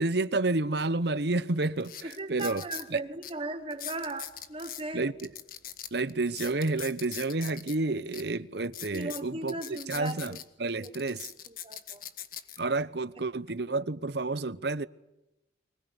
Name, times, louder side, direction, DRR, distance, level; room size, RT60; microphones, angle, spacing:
voice 1, 0.0-2.6 2.9-3.0 4.9-5.3 5.9-11.3 12.6-14.9, right 2 dB, 60° right, 0.9 m, -30 dB
sound 1, 1.1-1.2 1.8-2.9 3.2-3.3 3.7-4.8 5.2-7.8 8.1-8.2 8.6-10.4 10.8-12.6 13.2-13.5, left 10 dB, 50° left, 1.6 m, -41 dB
voice 2, 2.0-5.1 8.9-10.4 10.7-11.2 11.5-12.0, right 2 dB, 30° right, 1.3 m, -38 dB
24.0 x 21.0 x 10.0 m
head